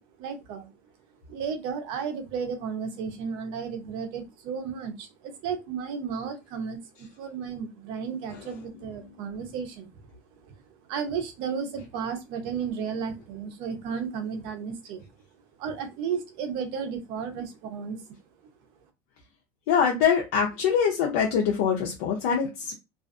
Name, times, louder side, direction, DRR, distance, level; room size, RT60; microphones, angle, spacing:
voice 1, 0.2-0.7 1.3-9.9 10.5-10.6 10.9-15.0 15.6-18.0, right 6 dB, 70° right, 7 dB, 0.7 m, -33 dB
voice 2, 19.7-22.7, left 7 dB, 85° left, -1 dB, 0.6 m, -24 dB
2.4 x 2.4 x 2.4 m, 0.23 s
supercardioid pair, 120°, 9 cm